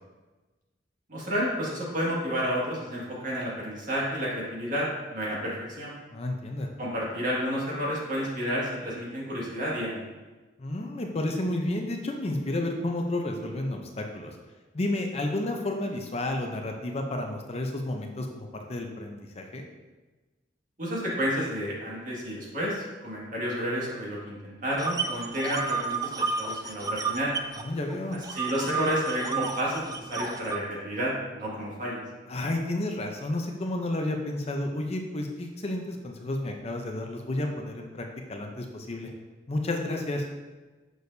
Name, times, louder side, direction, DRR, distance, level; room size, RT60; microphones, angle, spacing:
voice 1, 1.1-5.9 6.8-10.1 20.8-26.0 26.4-27.3 28.3-32.0, equal, 50° right, -5 dB, 1.9 m, -30 dB
voice 2, 6.1-6.7 10.6-14.4 14.7-19.6 27.6-28.2 32.3-39.1 39.5-40.2, left 1 dB, 35° left, 3 dB, 0.6 m, -31 dB
sound 1, 24.8-27.6 27.9-30.6, right 4 dB, 20° right, 0.3 m, -31 dB
6.7 x 6.3 x 2.7 m, 1.2 s
head